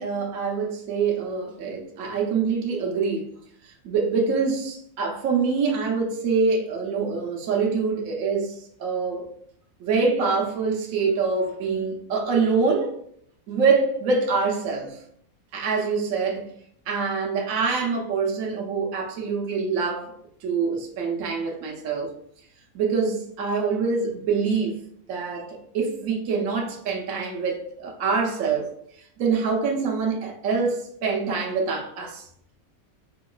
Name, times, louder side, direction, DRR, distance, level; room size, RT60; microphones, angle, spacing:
voice 1, 0.0-3.3 3.8-9.3 9.8-12.9 13.5-15.0 15.5-16.5 16.9-20.1 20.4-22.1 22.7-24.8 25.1-28.7 29.2-32.2, right 5 dB, 70° right, 1.1 m, -25 dB
4.4 x 3.0 x 2.3 m
omnidirectional pair, 1.5 m